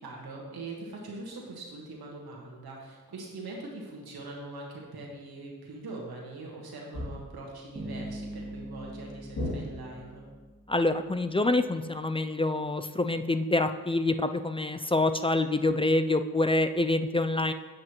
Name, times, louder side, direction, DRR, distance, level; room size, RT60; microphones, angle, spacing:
voice 1, 0.0-10.3, right 2 dB, 80° right, -1 dB, 1.4 m, -42 dB
sound 1, 6.9-7.5 9.4-10.2, left 1 dB, 90° left, 2.4 m, -35 dB
Bass guitar, 7.8-10.8, right 1 dB, 25° right, 2.0 m, -42 dB
voice 2, 10.7-17.5, left 2 dB, 15° left, 9 dB, 0.3 m, -26 dB
7.7 x 7.6 x 3.0 m, 1.3 s
cardioid pair, 45°, 37 cm